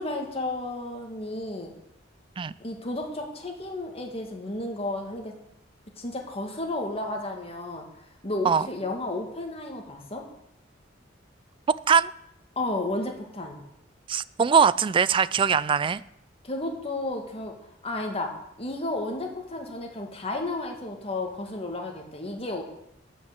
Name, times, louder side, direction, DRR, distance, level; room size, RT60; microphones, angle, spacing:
voice 1, 0.0-1.7 2.6-5.3 6.0-7.8 8.2-10.2 12.6-13.6 16.4-17.6 17.8-18.3 18.6-22.6, left 2 dB, 30° left, 2 dB, 2.0 m, -32 dB
voice 2, 14.1-16.0, right 6 dB, 25° right, 18 dB, 0.3 m, -21 dB
12.0 x 5.6 x 8.2 m, 0.78 s
head